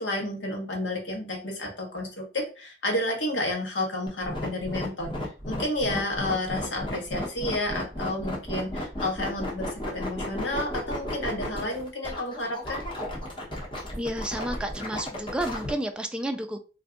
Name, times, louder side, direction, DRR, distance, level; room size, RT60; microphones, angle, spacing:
voice 1, 0.0-5.1 5.5-12.8, left 1 dB, 85° left, 1.1 m, -31 dB
sound 1, 4.1-15.7, left 1 dB, 30° left, 1.0 m, -33 dB
voice 2, 14.0-16.6, right 1 dB, 5° right, 0.3 m, -31 dB
2.6 x 2.3 x 3.6 m
head